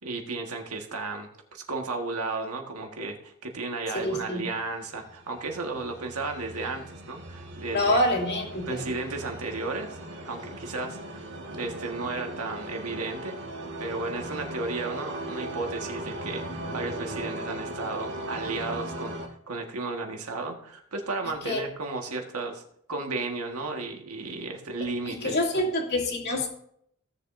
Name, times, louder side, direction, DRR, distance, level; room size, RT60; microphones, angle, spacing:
voice 1, 0.0-8.0 8.7-11.2 11.5-13.4 13.8-19.2 19.5-22.6 22.9-25.4, right 3 dB, 80° right, 3 dB, 1.6 m, -34 dB
voice 2, 3.9-4.4 7.7-8.8 21.4-21.6 25.1-26.5, left 1 dB, 50° left, -1 dB, 2.5 m, -26 dB
sound 1, 4.9-19.3, right 1 dB, 55° right, 1.8 m, -38 dB
16.5 x 7.3 x 2.7 m, 0.67 s
head